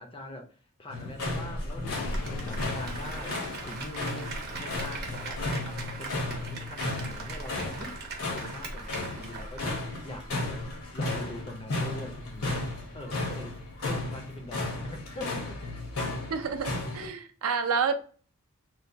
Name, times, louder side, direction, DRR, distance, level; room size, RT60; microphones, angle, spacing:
voice 1, 0.0-8.0 8.3-10.6 10.9-15.6, left 1 dB, 25° left, 0.4 m, -43 dB
sound 1, 0.9-17.1, left 2 dB, 70° left, 0.8 m, -34 dB
sound 2, 1.8-8.9 9.1-9.4 9.6-10.4 10.8-11.9 12.2-13.7 14.0-16.2, left 5 dB, 90° left, 0.4 m, -47 dB
Applause, 1.9-10.1 10.4-10.5, right 4 dB, 45° right, 0.8 m, -41 dB
voice 2, 16.3-17.9, right 5 dB, 65° right, 0.4 m, -29 dB
3.1 x 2.2 x 2.5 m
head